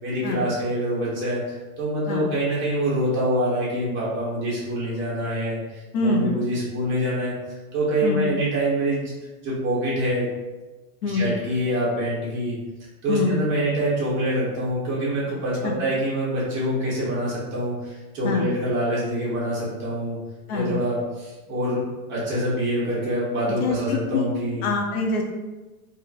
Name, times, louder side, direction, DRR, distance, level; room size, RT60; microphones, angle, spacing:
voice 1, 0.0-7.3 7.7-9.0 9.4-10.3 11.1-12.6 13.0-20.2 20.5-21.8 22.1-24.6, right 1 dB, 25° right, -8 dB, 1.1 m, -25 dB
voice 2, 5.9-6.3 8.0-8.2 11.0-11.2 13.1-13.3 18.2-18.5 20.5-20.7 23.6-24.3 24.6-25.2, left 3 dB, 85° left, 2 dB, 0.8 m, -24 dB
3.6 x 2.7 x 2.4 m, 1.2 s
supercardioid pair, 170°, 44 cm